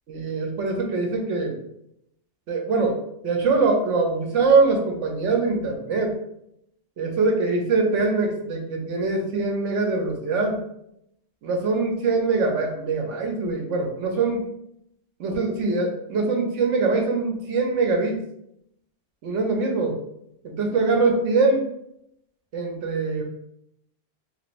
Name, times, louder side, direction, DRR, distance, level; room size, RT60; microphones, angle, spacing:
voice 1, 0.1-1.6 2.5-3.0 3.2-6.2 7.0-10.6 11.4-14.4 15.2-18.2 19.2-20.0 20.4-21.7 22.5-23.2, right 3 dB, 70° right, 2 dB, 1.0 m, -23 dB
3.5 x 2.5 x 3.1 m, 0.76 s
omnidirectional pair, 1.3 m